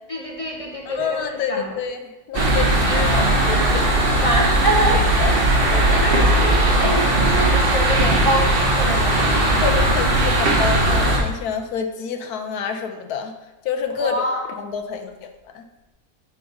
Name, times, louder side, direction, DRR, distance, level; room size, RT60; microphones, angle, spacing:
voice 1, 0.1-1.2 1.5-1.8 2.8-5.5 5.9-9.7 14.0-14.4, equal, 40° left, -2 dB, 0.5 m, -26 dB
voice 2, 0.8-3.1 3.5-4.3 5.2-5.4 5.7-6.1 9.6-13.3 13.6-14.2 14.6-15.6, left 6 dB, 70° left, 5 dB, 1.1 m, -28 dB
sound 1, 2.3-11.2, right 1 dB, 40° right, 1.1 m, -18 dB
5.8 x 5.1 x 3.9 m, 1.1 s
omnidirectional pair, 1.8 m